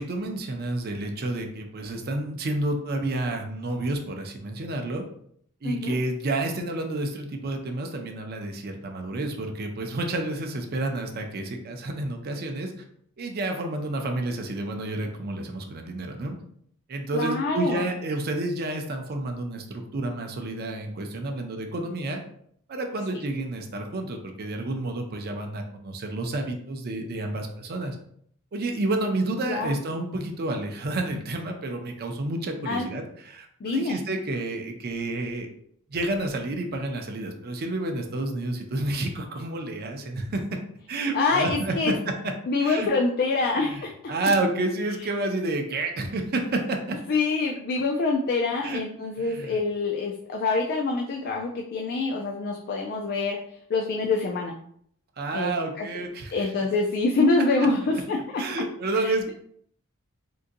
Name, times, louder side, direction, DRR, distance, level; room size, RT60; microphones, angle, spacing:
voice 1, 0.0-5.0 5.6-12.7 13.2-16.4 16.9-22.2 22.7-28.0 28.5-35.5 35.9-40.4 40.9-41.9 42.2-42.3 42.6-42.9 43.6-43.8 44.1-47.0 48.6-48.8 49.2-49.6 55.2-56.5 57.8-58.0 58.4-59.3, right 2 dB, 45° right, 4 dB, 0.5 m, -30 dB
voice 2, 5.6-6.0 17.1-17.8 29.5-29.8 32.7-32.9 33.6-34.0 41.1-41.9 42.5-44.1 47.1-53.4 53.7-54.5 55.3-55.5 55.8-55.9 56.3-58.2 59.0-59.3, left 3 dB, 45° left, 1 dB, 0.3 m, -25 dB
3.7 x 2.6 x 2.5 m, 0.66 s
head